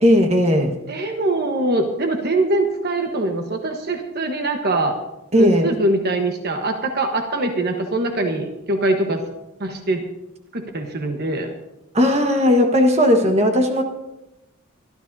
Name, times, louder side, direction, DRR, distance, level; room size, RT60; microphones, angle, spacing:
voice 1, 0.0-0.7 5.3-5.7 11.9-13.8, equal, 30° right, 4 dB, 1.4 m, -16 dB
voice 2, 0.9-5.0 5.3-9.2 9.6-10.0 10.5-11.5, right 2 dB, 50° right, 4 dB, 1.2 m, -22 dB
24.5 x 12.5 x 2.7 m, 0.93 s
head